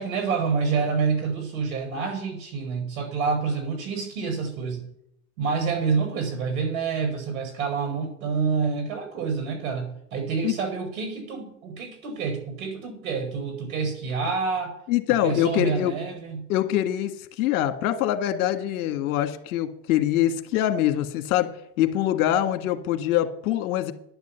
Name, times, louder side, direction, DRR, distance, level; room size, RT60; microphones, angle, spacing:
voice 1, 0.0-4.8 5.4-14.7 15.2-16.5, right 5 dB, 80° right, 5 dB, 5.1 m, -27 dB
voice 2, 14.9-15.9 16.5-17.1 17.4-21.5 21.8-23.9, left 12 dB, 65° left, 8 dB, 1.8 m, -24 dB
10.5 x 10.5 x 6.9 m, 0.74 s
hypercardioid pair, 90°, 42 cm